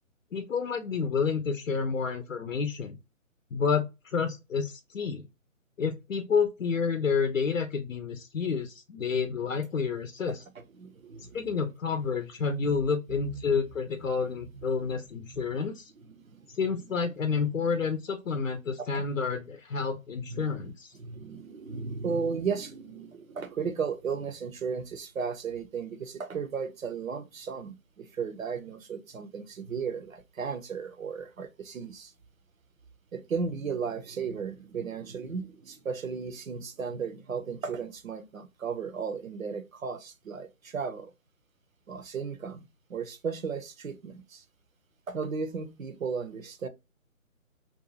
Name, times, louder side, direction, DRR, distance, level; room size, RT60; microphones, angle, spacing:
voice 1, 0.3-3.0 3.5-5.2 5.8-10.4 11.3-15.9 16.5-20.9, left 5 dB, 65° left, 0.6 m, -29 dB
voice 2, 10.6-11.4 13.1-13.6 16.1-16.5 17.3-17.4 18.8-19.0 20.3-20.7 21.0-32.1 33.1-41.1 41.9-42.6 42.9-44.4 45.1-46.7, right 5 dB, 70° right, 0.8 m, -35 dB
2.7 x 2.3 x 2.7 m
figure-of-eight pair, 160°, 42 cm